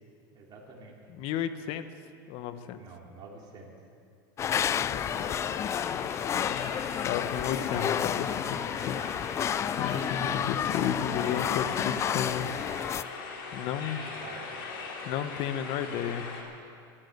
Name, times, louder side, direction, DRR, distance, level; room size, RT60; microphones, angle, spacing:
voice 1, 0.3-1.0 2.8-3.7 13.8-14.5, right 3 dB, 35° right, -2 dB, 3.4 m, -48 dB
voice 2, 1.2-1.9 2.3-2.8 4.5-5.4 5.9-6.7 7.0-8.6 8.8-9.0 9.8-12.5 13.5-14.0 15.0-16.3, left 9 dB, 55° left, 11 dB, 1.0 m, -33 dB
sound 1, 4.4-13.0, left 9 dB, 25° left, 0.3 m, -30 dB
sound 2, 5.0-16.4, left 4 dB, 75° left, 2.7 m, -40 dB
13.5 x 11.5 x 8.0 m, 2.3 s
supercardioid pair, 120°, 12 cm